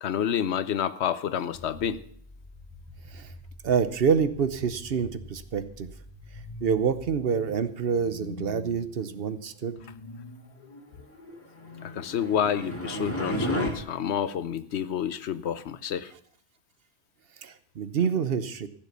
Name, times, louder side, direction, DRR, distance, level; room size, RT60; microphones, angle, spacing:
voice 1, 0.0-2.0 11.8-16.1, left 9 dB, 85° left, 14 dB, 1.0 m, -29 dB
sound 1, 1.5-11.9, left 2 dB, 35° left, 1.8 m, -46 dB
voice 2, 3.6-5.9 6.6-9.8 17.4-18.7, right 6 dB, 65° right, 12 dB, 1.0 m, -27 dB
sound 2, 11.8-13.7, equal, 10° left, 2.5 m, -31 dB
15.5 x 7.5 x 6.7 m, 0.62 s
omnidirectional pair, 1.1 m